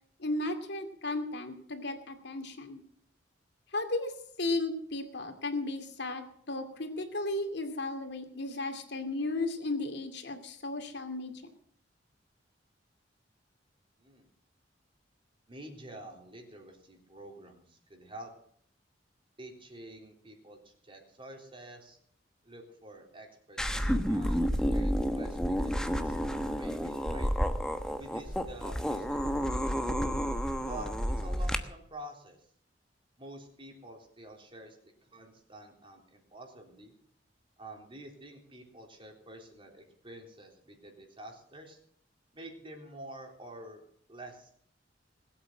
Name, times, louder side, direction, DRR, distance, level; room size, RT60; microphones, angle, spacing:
voice 1, 0.2-2.8 3.7-4.1 4.4-11.3, left 2 dB, 65° left, 7 dB, 2.5 m, -34 dB
voice 2, 15.5-18.3 19.4-22.0 22.4-27.3 28.0-29.9 30.7-32.4 33.2-34.8 35.0-36.9 37.6-41.8 42.3-43.8 44.1-44.5, right 1 dB, 30° right, 2 dB, 3.7 m, -48 dB
sound 1, 23.6-31.6, equal, 5° left, 1.1 m, -30 dB
20.5 x 8.6 x 7.4 m, 0.63 s
head